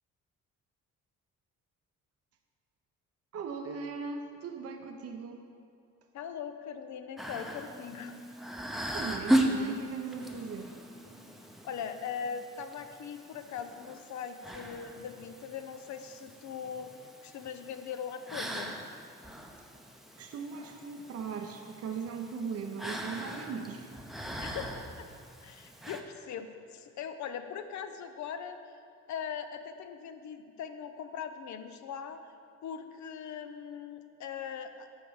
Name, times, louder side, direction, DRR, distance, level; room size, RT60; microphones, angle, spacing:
voice 1, 3.3-5.4 8.9-10.7 20.2-23.9, right 5 dB, 55° right, 4 dB, 0.7 m, -39 dB
voice 2, 6.1-8.2 11.6-16.9 17.2-18.9 24.4-25.1 25.4-28.8 29.1-32.2 32.6-34.9, left 7 dB, 70° left, 8 dB, 0.7 m, -40 dB
sound 1, 7.2-26.0, right 1 dB, ahead, 0.7 m, -37 dB
8.8 x 4.5 x 6.4 m, 2.4 s
cardioid pair, 90°, 30 cm